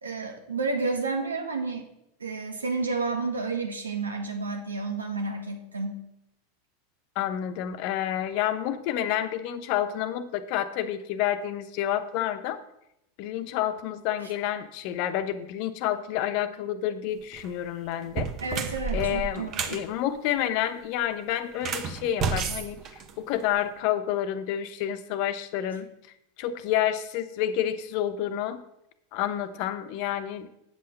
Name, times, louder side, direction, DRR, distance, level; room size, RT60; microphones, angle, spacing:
voice 1, 0.0-1.9 2.2-6.0 18.4-19.8, right 3 dB, 90° right, 4 dB, 1.6 m, -31 dB
voice 2, 7.2-12.6 13.2-18.3 18.9-25.9 26.4-28.6 29.1-30.5, left 11 dB, 55° left, 10 dB, 0.9 m, -29 dB
sound 1, 17.2-17.5 18.0-19.8 21.5-23.6, right 5 dB, 40° right, 1.1 m, -31 dB
8.1 x 5.7 x 7.8 m, 0.82 s
hypercardioid pair, 90°, 0 cm